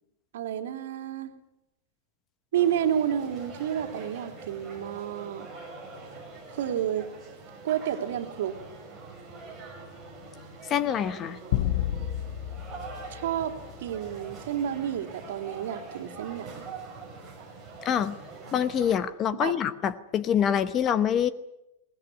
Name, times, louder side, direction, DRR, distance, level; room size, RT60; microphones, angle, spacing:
voice 1, 0.3-1.3 2.5-5.5 6.5-7.0 7.6-8.6 13.1-16.6 19.4-19.5, right 10 dB, 80° right, 6 dB, 2.9 m, -30 dB
sound 1, 2.5-18.9, right 3 dB, 10° right, 7.0 m, -44 dB
voice 2, 10.7-11.4 17.8-18.1 18.5-21.3, left 9 dB, 25° left, 14 dB, 0.9 m, -25 dB
sound 2, 11.5-14.1, left 12 dB, 55° left, 0.9 m, -31 dB
23.0 x 19.5 x 9.8 m, 0.88 s
supercardioid pair, 170°, 0 cm